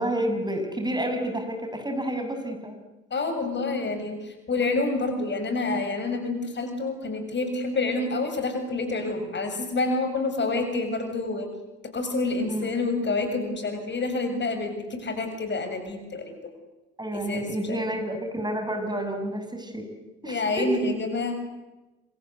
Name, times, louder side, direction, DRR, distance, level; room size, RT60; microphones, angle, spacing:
voice 1, 0.0-2.7 12.5-12.8 17.0-19.8 20.2-20.8, right 1 dB, 15° right, 5 dB, 6.4 m, -29 dB
voice 2, 3.1-4.2 4.5-11.5 11.9-16.4 17.1-17.8 20.2-21.3, left 3 dB, 35° left, 7 dB, 7.2 m, -28 dB
26.5 x 26.5 x 8.1 m, 1.1 s
hypercardioid pair, 55°, 30 cm